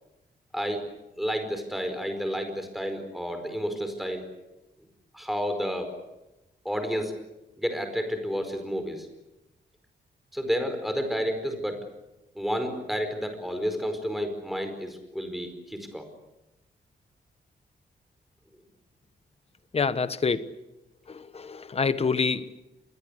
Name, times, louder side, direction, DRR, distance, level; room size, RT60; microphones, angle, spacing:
voice 1, 0.5-0.8 1.2-4.2 5.1-5.9 6.6-7.1 7.6-9.1 10.3-11.8 12.3-16.0, equal, ahead, 4.9 m, -30 dB
voice 2, 19.7-20.5 21.1-22.6, left 5 dB, 35° left, 1.2 m, -27 dB
27.5 x 21.5 x 8.3 m
wide cardioid pair, 140°, 18 cm